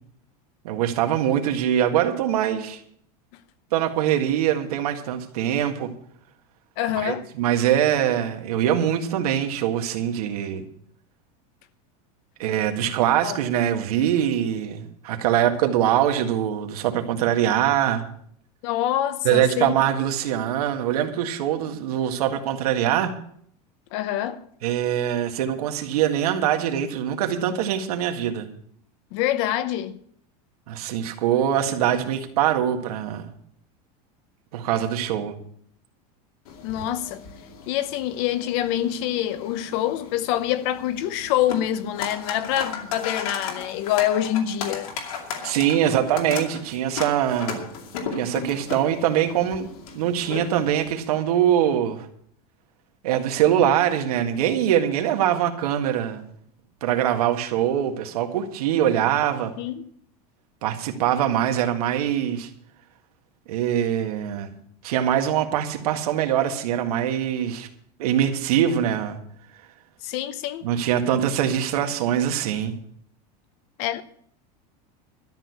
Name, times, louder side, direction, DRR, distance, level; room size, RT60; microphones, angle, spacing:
voice 1, 0.6-2.8 3.7-5.9 7.0-10.6 12.4-18.0 19.2-23.1 24.6-28.5 30.7-33.3 34.5-35.4 45.4-47.7 48.2-49.7 49.9-52.1 53.0-56.2 56.8-59.5 60.6-62.5 63.5-64.5 64.8-67.7 68.0-69.2 70.6-72.7, right 10 dB, 80° right, 1.8 m, -23 dB
voice 2, 6.8-7.2 12.8-12.9 13.2-13.4 18.6-19.7 23.9-24.4 29.1-30.0 36.6-37.2 37.7-44.9 59.6-59.8 70.0-70.6 73.8-74.0, left 12 dB, 45° left, 0.8 m, -26 dB
sound 1, 36.4-50.9, left 6 dB, 70° left, 2.5 m, -36 dB
13.0 x 6.3 x 9.6 m
supercardioid pair, 170°, 19 cm